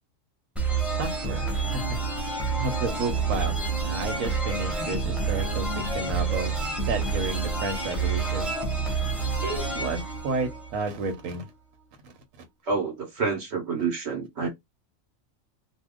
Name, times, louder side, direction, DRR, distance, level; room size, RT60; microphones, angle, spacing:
sound 1, 0.6-11.2, right 4 dB, ahead, 0.7 m, -28 dB
voice 1, 1.0-2.0 2.6-3.6 3.8-6.6 6.9-8.5 9.4-11.5 12.0-12.1, right 3 dB, 90° right, 1.2 m, -31 dB
voice 2, 12.7-14.5, right 4 dB, 60° right, 1.0 m, -28 dB
2.8 x 2.2 x 3.5 m
omnidirectional pair, 1.3 m